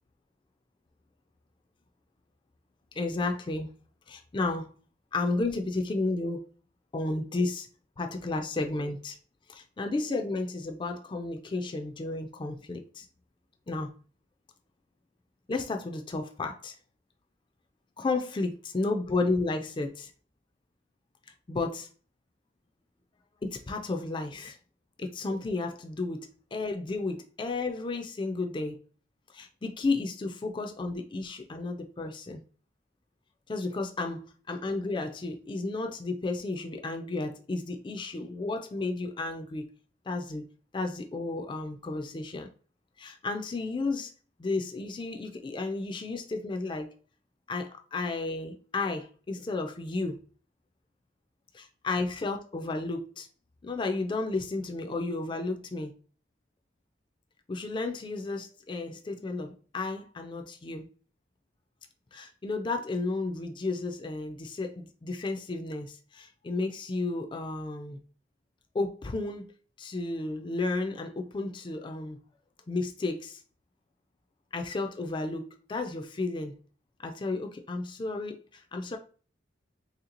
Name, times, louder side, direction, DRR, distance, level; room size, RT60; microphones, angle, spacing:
voice 1, 2.9-3.7 4.1-4.7 5.1-6.4 6.9-7.7 8.0-9.2 9.5-13.1 13.7-13.9 15.5-16.8 18.0-20.1 21.5-21.9 23.4-24.6 25.0-28.8 29.3-32.4 33.5-39.7 40.1-40.5 40.7-42.5 43.0-44.1 44.4-46.9 47.5-50.2 51.8-53.3 53.6-55.9 57.5-60.9 62.1-68.0 68.7-69.5 69.8-72.2 72.7-73.4 74.5-76.6 77.0-79.0, left 3 dB, 25° left, 0.4 m, -32 dB
3.1 x 2.9 x 3.8 m
head